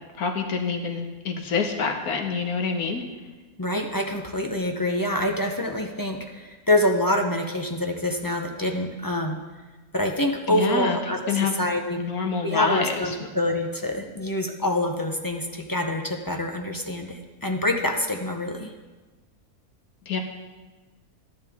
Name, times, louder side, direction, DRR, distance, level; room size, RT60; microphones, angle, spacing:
voice 1, 0.2-3.0 10.5-11.0 11.3-11.5 12.0-12.9 20.1-20.2, left 5 dB, 80° left, 4 dB, 1.6 m, -26 dB
voice 2, 3.6-9.4 9.9-12.0 12.4-18.7, left 1 dB, 30° left, 2 dB, 0.4 m, -26 dB
12.5 x 10.5 x 3.6 m, 1.3 s
omnidirectional pair, 1.6 m